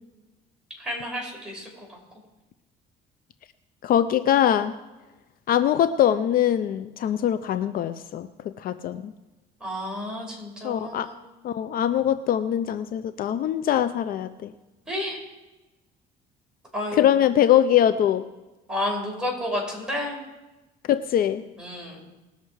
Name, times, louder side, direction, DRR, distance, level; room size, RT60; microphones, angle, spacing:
voice 1, 0.8-1.7 9.6-11.2 14.9-15.2 16.7-17.1 18.7-20.2 21.6-22.0, left 1 dB, 5° right, -3 dB, 5.2 m, -31 dB
voice 2, 3.8-4.7 5.5-9.1 10.6-11.1 11.4-14.5 16.9-18.2 20.9-21.5, left 10 dB, 60° left, 12 dB, 0.5 m, -22 dB
20.0 x 6.7 x 4.7 m, 1.1 s
cardioid pair, 110°, 17 cm